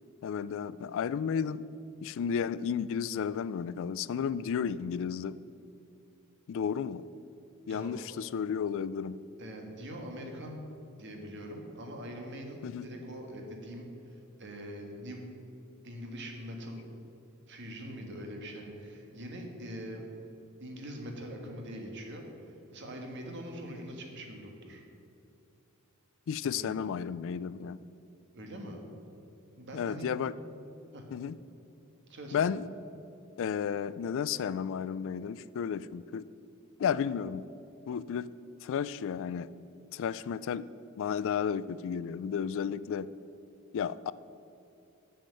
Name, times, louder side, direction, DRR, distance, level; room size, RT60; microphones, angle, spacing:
voice 1, 0.2-1.6 2.0-5.4 6.5-7.1 7.7-9.2 12.6-12.9 26.3-27.8 29.7-30.3 31.1-31.4 32.3-32.7 33.4-36.2 36.8-37.4 37.9-38.3 38.6-39.5 39.9-40.7 41.0-43.1 43.7-44.1, left 7 dB, 65° left, 17 dB, 0.3 m, -33 dB
voice 2, 7.6-8.0 9.4-10.7 11.0-15.2 15.8-16.9 17.5-20.1 20.6-24.8 26.4-26.7 28.3-28.8 29.6-30.1 30.9-31.1 32.1-32.4, equal, 55° right, 2 dB, 1.6 m, -43 dB
7.4 x 7.2 x 7.7 m, 2.7 s
head